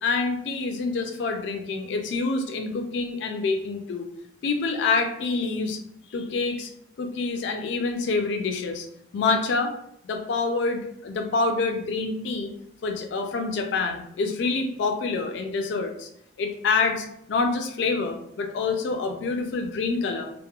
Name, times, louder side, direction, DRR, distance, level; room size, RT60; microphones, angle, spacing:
voice 1, 0.0-4.1 4.4-5.8 6.1-6.7 7.0-8.9 9.1-9.7 10.0-12.5 12.8-16.1 16.4-20.4, left 4 dB, 70° left, 4 dB, 0.3 m, -27 dB
2.9 x 2.1 x 2.3 m, 0.75 s
head